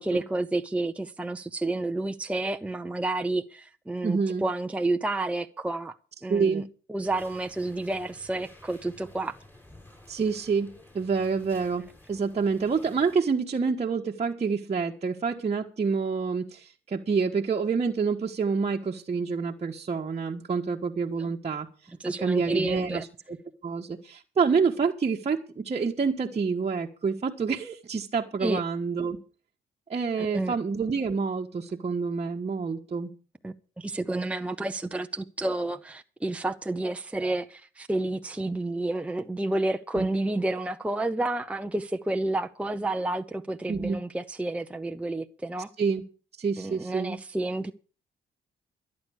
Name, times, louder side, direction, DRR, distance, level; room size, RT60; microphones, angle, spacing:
voice 1, 0.0-6.0 6.2-6.6 6.9-9.4 22.0-23.0 28.4-28.6 30.2-30.6 33.4-45.7 46.6-47.7, right 2 dB, 5° right, 0.8 m, -30 dB
voice 2, 4.0-4.4 6.3-6.7 10.1-21.7 22.2-23.4 23.6-29.2 29.9-33.1 40.0-40.1 43.7-44.0 45.8-46.0 46.4-47.2, right 5 dB, 35° right, 1.4 m, -27 dB
sound 1, 7.0-13.2, left 1 dB, 10° left, 7.1 m, -53 dB
13.5 x 9.7 x 6.4 m
cardioid pair, 90°, 20 cm